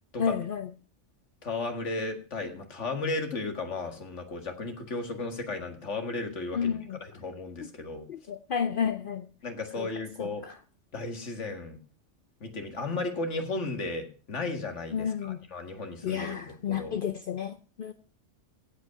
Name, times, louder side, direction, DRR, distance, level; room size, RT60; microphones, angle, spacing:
voice 1, 0.2-0.7 6.5-7.0 8.1-9.3 9.8-9.9 10.2-10.5 14.9-15.4 16.0-17.9, left 7 dB, 55° left, 10 dB, 0.8 m, -31 dB
voice 2, 1.4-8.1 9.4-10.4 10.9-11.8 12.4-17.0, left 3 dB, 80° left, 5 dB, 2.2 m, -35 dB
16.0 x 5.5 x 5.8 m, 0.37 s
omnidirectional pair, 1.2 m